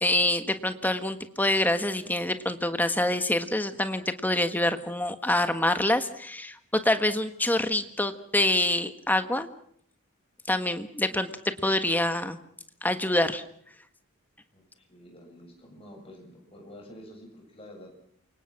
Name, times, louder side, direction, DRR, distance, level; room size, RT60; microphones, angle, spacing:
voice 1, 0.0-9.5 10.5-11.3 11.6-12.4 12.8-13.4, left 1 dB, 10° left, 9 dB, 1.5 m, -26 dB
voice 2, 14.5-17.9, equal, 25° left, 2 dB, 7.6 m, -48 dB
28.5 x 25.0 x 6.0 m, 0.66 s
head